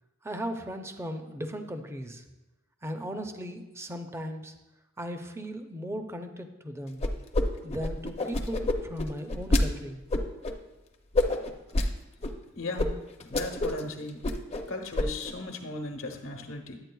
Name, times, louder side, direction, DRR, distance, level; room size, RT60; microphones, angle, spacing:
voice 1, 0.2-2.2 2.8-4.5 5.0-7.0 7.6-10.0, equal, 15° right, 6 dB, 0.5 m, -37 dB
sound 1, 7.0-7.4 7.7-9.6 10.1-10.5 11.1-11.9 12.2-12.3 12.8-12.9 13.2-13.8 14.1-14.6 15.0-15.3, left 2 dB, 30° left, 0.5 m, -27 dB
voice 2, 12.6-12.9 13.2-14.2 14.7-16.8, left 2 dB, 85° left, 3 dB, 1.0 m, -36 dB
10.5 x 8.5 x 2.3 m, 1.0 s
head